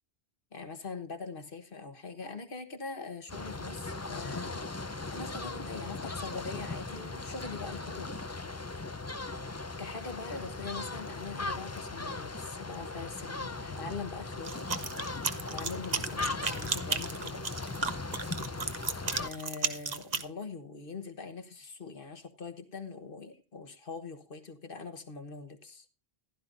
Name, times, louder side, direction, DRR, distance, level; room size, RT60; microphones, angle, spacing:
voice 1, 0.5-4.6 5.1-8.2 9.8-14.7 15.5-17.4 19.2-25.9, left 4 dB, 55° left, 7 dB, 1.5 m, -42 dB
sound 1, 3.3-19.3, left 3 dB, 20° left, 0.5 m, -38 dB
sound 2, 14.4-20.2, right 5 dB, 45° right, 1.0 m, -34 dB
15.5 x 12.0 x 2.6 m, 0.31 s
omnidirectional pair, 1.1 m